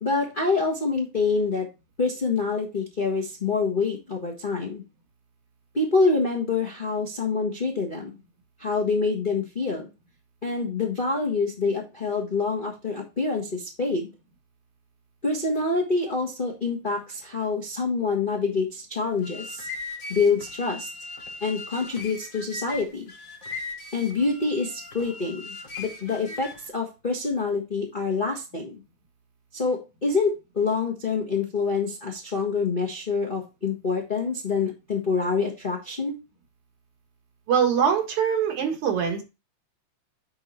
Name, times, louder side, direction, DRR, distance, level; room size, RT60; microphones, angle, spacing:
voice 1, 0.0-1.7 2.0-4.8 5.7-8.2 8.6-9.9 10.4-14.1 15.2-19.7 20.1-20.9 21.4-23.1 23.9-28.8 29.5-36.2, left 4 dB, 30° left, -2 dB, 0.9 m, -26 dB
sound 1, 19.1-26.7, left 3 dB, 60° left, 0.8 m, -39 dB
voice 2, 37.5-39.2, right 7 dB, 80° right, 3 dB, 3.0 m, -23 dB
9.9 x 3.8 x 4.2 m, 0.27 s
omnidirectional pair, 3.3 m